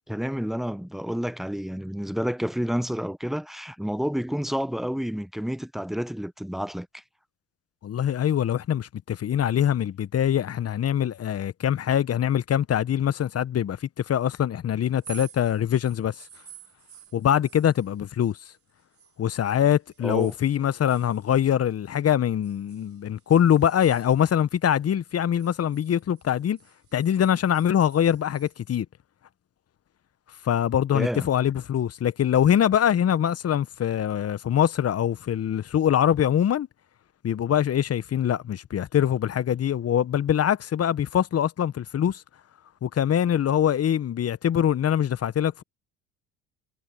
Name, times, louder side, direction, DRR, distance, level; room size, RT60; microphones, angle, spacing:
voice 1, 0.1-6.9 20.0-20.3 30.9-31.3, equal, ahead, 0.7 m, -29 dB
voice 2, 7.8-16.3 17.1-18.4 19.2-26.6 26.9-28.8 30.4-36.7 37.2-42.2 42.8-45.6, left 9 dB, 40° left, 1.2 m, -23 dB
sound 1, 14.9-19.2 19.5-22.0 22.4-24.8 25.1-28.6, right 8 dB, 35° right, 3.3 m, -50 dB
hypercardioid pair, 65°, 39 cm